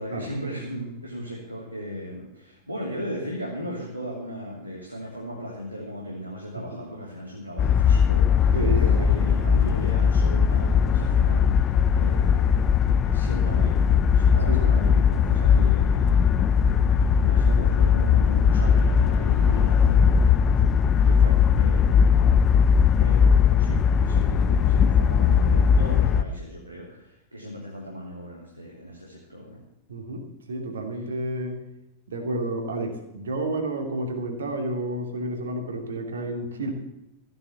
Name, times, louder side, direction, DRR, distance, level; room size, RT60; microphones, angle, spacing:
voice 1, 0.0-21.3 21.5-22.2 23.0-29.6 30.9-31.0, equal, 90° right, -3 dB, 3.1 m, -37 dB
sound 1, 7.6-26.2, left 7 dB, 30° left, 0.8 m, -19 dB
voice 2, 8.5-9.1 14.5-14.8 21.0-21.4 29.9-31.6 32.1-36.7, right 1 dB, 65° right, 5 dB, 2.8 m, -30 dB
15.0 x 9.6 x 7.2 m, 0.91 s
figure-of-eight pair, 90°, 0 cm